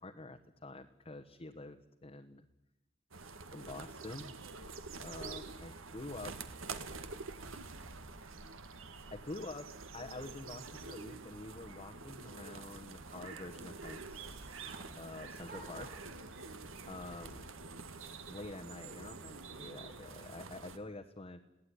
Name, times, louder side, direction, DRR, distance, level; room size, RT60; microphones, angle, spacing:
voice 1, 0.0-2.5 3.5-4.4 5.0-6.4 9.1-14.7 15.0-15.9 16.9-17.4 18.3-21.4, left 2 dB, 30° left, 4 dB, 1.2 m, -47 dB
sound 1, 3.1-20.8, right 4 dB, 70° right, 1.9 m, -47 dB
sound 2, 12.0-16.6, right 3 dB, 45° right, 7.3 m, -58 dB
21.5 x 17.0 x 9.9 m, 0.95 s
head